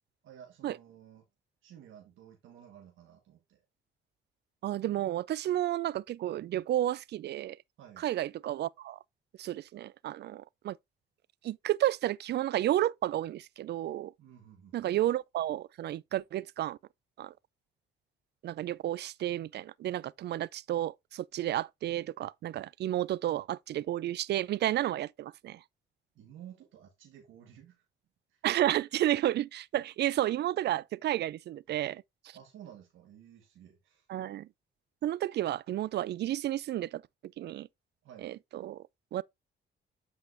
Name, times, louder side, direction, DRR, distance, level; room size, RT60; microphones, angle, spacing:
voice 1, 0.2-1.2 1.6-3.6 7.8-8.1 14.2-14.9 26.1-27.8 28.3-28.4 32.3-34.1 38.0-38.3, right 10 dB, 80° right, 1.5 m, -53 dB
voice 2, 4.6-7.6 8.0-9.0 9.4-10.8 11.4-14.1 14.7-16.8 17.2-17.3 18.4-25.6 28.4-32.4 34.1-34.5 35.0-37.0 37.4-37.7 38.2-38.8 39.1-39.2, right 13 dB, 60° right, 0.4 m, -32 dB
8.2 x 4.9 x 2.6 m
cardioid pair, 90°, 20 cm